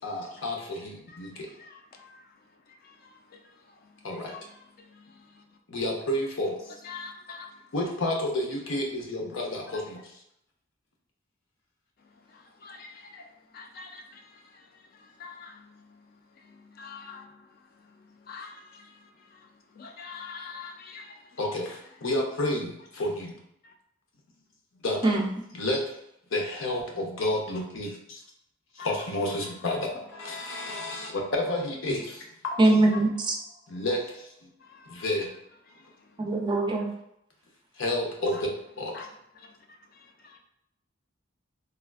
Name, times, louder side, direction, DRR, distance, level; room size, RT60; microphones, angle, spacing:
voice 1, 0.0-1.5 4.0-4.3 5.7-6.7 7.7-10.0 21.4-23.4 24.7-25.0 25.5-25.8 26.3-28.2 28.7-32.2 32.4-32.6 33.7-34.5 34.9-35.3 37.8-38.5 38.8-38.9, left 1 dB, 85° left, 0 dB, 0.7 m, -30 dB
voice 2, 1.1-2.3 2.7-5.4 6.8-7.7 12.1-21.4 23.6-23.7 28.8-29.1 29.4-29.5 32.9-33.0 34.6-35.2 35.7-36.1 38.3-38.4 38.9-39.1 39.4-40.4, left 5 dB, 50° left, 3 dB, 0.3 m, -47 dB
voice 3, 32.6-33.3 36.2-36.9, right 2 dB, 25° right, 1 dB, 0.4 m, -22 dB
3.5 x 2.4 x 2.3 m, 0.77 s
head